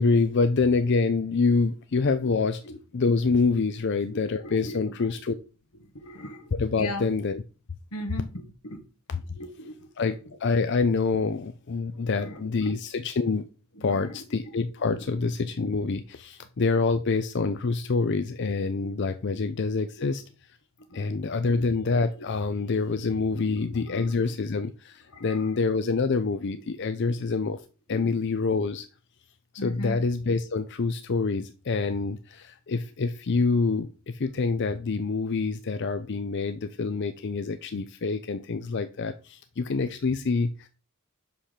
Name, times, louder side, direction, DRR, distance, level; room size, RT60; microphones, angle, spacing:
voice 1, 0.0-2.6 2.9-5.3 6.5-7.4 9.1-9.2 10.0-13.5 13.8-20.2 20.9-27.6 27.9-28.9 29.5-40.7, left 4 dB, 50° left, 0.5 m, -26 dB
voice 2, 4.1-5.4 6.0-6.5 6.8-7.1 7.9-8.8 9.4-10.1 12.2-12.8 13.8-14.2 15.0-15.2 18.8-18.9 19.3-19.4 20.0-20.1 20.9-21.2 21.5-21.7 22.2-22.3 22.6-22.7 23.4-24.2 25.1-25.5 27.1-27.2 27.9-28.0 29.6-30.0, left 1 dB, 85° left, 1.6 m, -39 dB
5.7 x 5.7 x 6.6 m
head